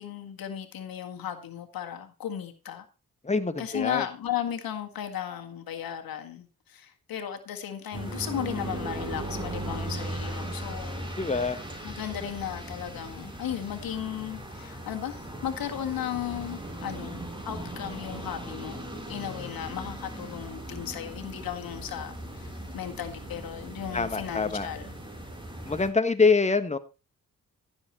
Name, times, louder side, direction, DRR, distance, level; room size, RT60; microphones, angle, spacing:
voice 1, 0.0-2.9 3.6-11.6 11.8-25.0, left 10 dB, 80° left, 1.8 m, -35 dB
voice 2, 3.2-4.0 11.2-11.6 23.9-24.7 25.6-26.8, left 4 dB, 20° left, 1.4 m, -25 dB
sound 1, 7.9-25.9, right 1 dB, 15° right, 5.2 m, -38 dB
14.5 x 7.1 x 4.3 m
supercardioid pair, 45°, 35 cm